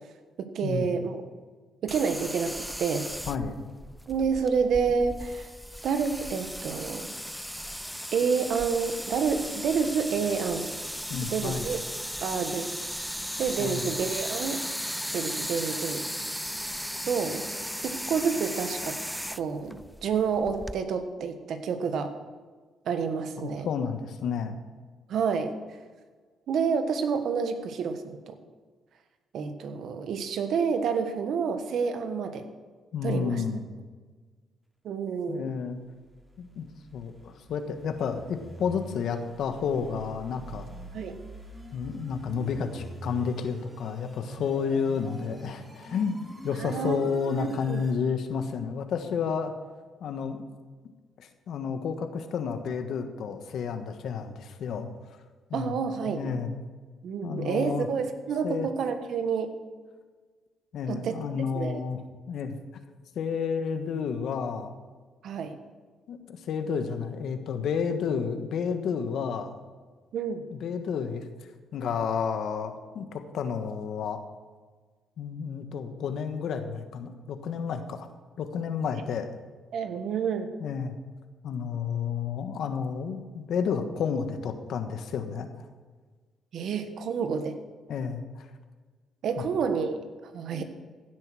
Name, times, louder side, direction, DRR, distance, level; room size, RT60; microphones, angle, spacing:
voice 1, 0.4-1.2 1.8-3.1 4.1-5.5 5.8-7.1 8.1-10.7 11.3-11.8 12.2-12.7 13.4-14.6 15.1-16.0 17.0-17.4 17.8-19.0 19.4-22.1 22.8-23.7 25.1-25.5 26.5-28.4 29.3-32.5 33.0-33.4 34.8-35.5 40.9-41.2 46.6-47.1 47.4-47.8 55.5-56.3 57.0-59.5 60.9-61.2 61.5-61.8 65.2-65.6 70.1-70.4 79.7-80.5 86.5-87.6 89.2-90.6, right 6 dB, 70° right, 8 dB, 1.3 m, -29 dB
sound 1, 1.9-20.8, equal, ahead, 0.4 m, -36 dB
voice 2, 3.3-3.6 11.1-11.6 13.6-13.8 23.4-24.6 32.9-33.7 35.3-35.8 36.4-36.7 36.9-40.6 41.7-49.5 50.0-50.5 51.2-54.9 55.5-55.7 56.1-56.6 57.2-57.9 58.4-58.7 60.7-62.0 62.3-62.6 63.1-64.7 66.1-69.5 70.5-71.3 71.7-74.2 75.2-78.1 78.4-79.3 80.6-81.0 81.4-85.5 87.9-88.5 89.4-89.5, left 6 dB, 70° left, 7 dB, 1.3 m, -31 dB
sound 2, 35.8-48.0, equal, 15° right, 3.0 m, -46 dB
15.5 x 7.7 x 6.2 m, 1.4 s
cardioid pair, 90°, 0 cm